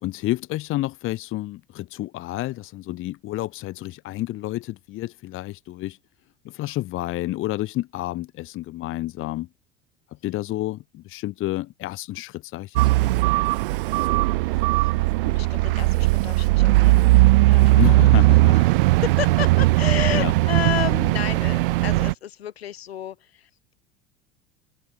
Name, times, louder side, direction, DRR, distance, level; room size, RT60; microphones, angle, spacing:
voice 1, 0.0-6.0 6.4-9.5 10.1-13.2 17.8-18.9 20.1-20.3, left 16 dB, 40° left, 1.3 m, -30 dB
sound 1, 12.8-22.1, right 21 dB, 60° right, 0.7 m, -18 dB
voice 2, 15.2-17.1 17.5-23.7, left 10 dB, 75° left, 4.4 m, -32 dB
figure-of-eight pair, 75°, 31 cm